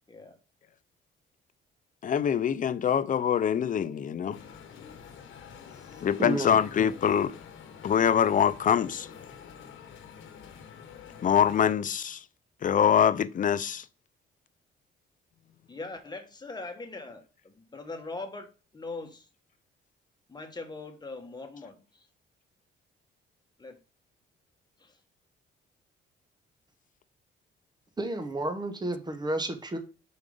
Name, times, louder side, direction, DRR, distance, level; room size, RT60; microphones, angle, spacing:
voice 1, 2.0-4.4 6.0-7.3 7.8-9.1 11.2-12.2 12.6-13.8, left 8 dB, 40° left, 0.5 m, -24 dB
sound 1, 4.3-11.7, left 7 dB, 75° left, 1.2 m, -47 dB
voice 2, 5.9-6.5 28.0-29.8, right 2 dB, 20° right, 1.4 m, -31 dB
voice 3, 15.7-19.3 20.3-22.1 23.6-23.8 24.8-25.0, left 3 dB, 20° left, 1.4 m, -41 dB
5.3 x 4.7 x 5.3 m
cardioid pair, 90°, 20 cm